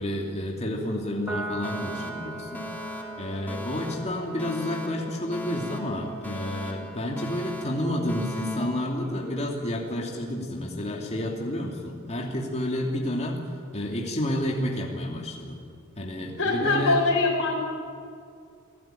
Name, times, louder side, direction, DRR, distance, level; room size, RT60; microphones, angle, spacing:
voice 1, 0.0-2.6 3.2-13.4 13.7-15.6 16.0-17.0, left 1 dB, 30° left, -1 dB, 2.7 m, -30 dB
Piano, 1.3-8.0, right 2 dB, 10° right, 2.7 m, -41 dB
Alarm, 1.6-9.6, equal, 10° left, 2.7 m, -39 dB
voice 2, 16.4-17.5, left 3 dB, 60° left, -3 dB, 5.4 m, -23 dB
28.0 x 16.5 x 9.2 m, 2.3 s
head